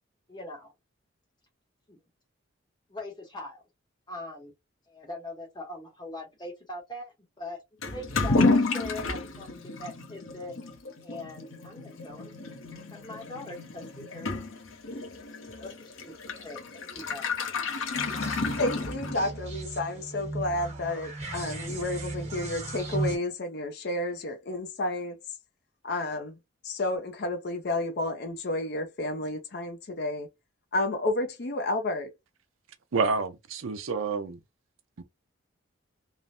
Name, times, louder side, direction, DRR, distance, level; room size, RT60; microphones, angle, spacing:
voice 1, 0.3-0.7 1.9-2.0 2.9-3.6 4.1-4.5 4.9-7.6 7.9-10.6 11.0-12.3 12.9-14.3 14.9-15.1 15.6-17.3, left 2 dB, 20° left, 0.8 m, -42 dB
Toilet flush / Liquid, 7.8-19.5, left 3 dB, 80° left, 0.8 m, -31 dB
sound 1, 17.9-23.2, right 2 dB, 35° right, 1.2 m, -36 dB
voice 2, 18.6-25.2 25.8-26.4 26.6-30.3 30.7-32.1, left 2 dB, 50° left, 0.5 m, -31 dB
voice 3, 32.9-34.4 35.0-35.1, right 4 dB, 80° right, 0.6 m, -28 dB
3.2 x 2.0 x 2.5 m
head